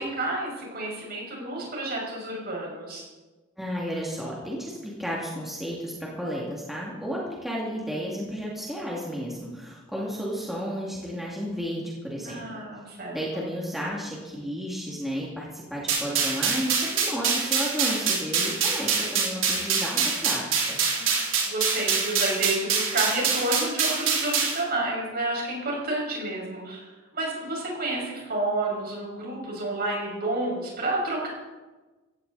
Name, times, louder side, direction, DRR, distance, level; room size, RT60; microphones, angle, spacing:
voice 1, 0.0-3.0 12.2-13.2 21.0-21.1 21.4-26.8 27.1-31.3, right 2 dB, 45° right, -2 dB, 6.1 m, -30 dB
voice 2, 3.6-12.6 13.1-20.8, equal, ahead, -5 dB, 2.5 m, -33 dB
sound 1, 15.9-24.6, right 5 dB, 65° right, 4.2 m, -25 dB
16.5 x 16.0 x 4.2 m, 1.2 s
head